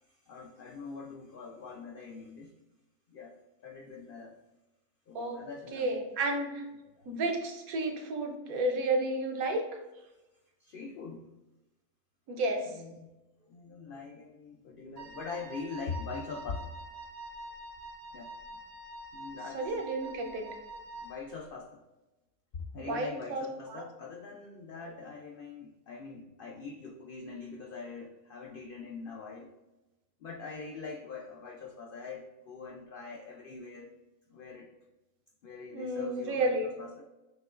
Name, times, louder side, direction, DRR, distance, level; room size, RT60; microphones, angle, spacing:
voice 1, 0.3-2.5 3.1-3.4 3.6-4.3 5.1-5.9 7.0-7.1 10.6-11.3 12.7-13.1 13.5-16.7 18.1-18.6 19.1-19.6 20.0-20.1 21.0-21.8 22.5-29.5 30.2-33.9 34.3-34.7 35.4-37.0, left 4 dB, 85° left, 0 dB, 0.4 m, -43 dB
voice 2, 5.7-6.6 7.0-9.6 12.3-12.7 19.3-20.5 22.8-23.9 35.7-36.7, right 2 dB, 80° right, 3 dB, 1.2 m, -32 dB
Wind instrument woodwind instrument, 15.0-21.3, right 2 dB, 60° right, 0.7 m, -46 dB
6.2 x 2.9 x 2.4 m, 1.0 s
omnidirectional pair, 1.5 m